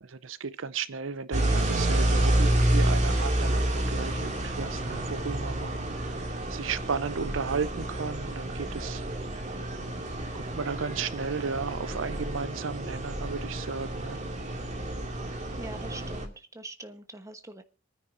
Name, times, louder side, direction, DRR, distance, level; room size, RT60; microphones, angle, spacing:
voice 1, 0.0-5.7 6.5-9.0 10.3-14.3, right 5 dB, 70° right, 0.7 m, -34 dB
sound 1, 1.3-16.3, right 1 dB, 35° right, 2.4 m, -29 dB
voice 2, 15.6-17.6, right 2 dB, 15° right, 1.2 m, -43 dB
26.0 x 9.9 x 2.7 m
head